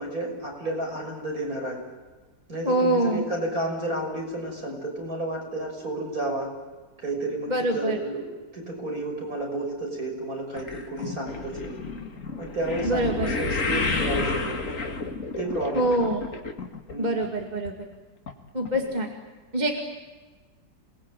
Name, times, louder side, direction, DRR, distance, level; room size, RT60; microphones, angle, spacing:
voice 1, 0.0-1.8 2.5-6.5 7.0-8.3 8.5-11.7 12.4-14.7 15.4-16.0 16.9-17.1 18.7-18.8, right 1 dB, 50° right, 1 dB, 6.8 m, -31 dB
voice 2, 2.6-3.3 7.5-8.0 12.8-13.3 15.7-16.2 17.0-17.7 18.5-19.1 19.5-19.8, right 1 dB, 25° right, 1 dB, 2.3 m, -24 dB
sound 1, 10.6-17.0 17.2-17.7 18.3-18.4 18.7-18.8, left 3 dB, 45° left, 2.4 m, -30 dB
28.0 x 20.5 x 9.1 m, 1.3 s
omnidirectional pair, 1.9 m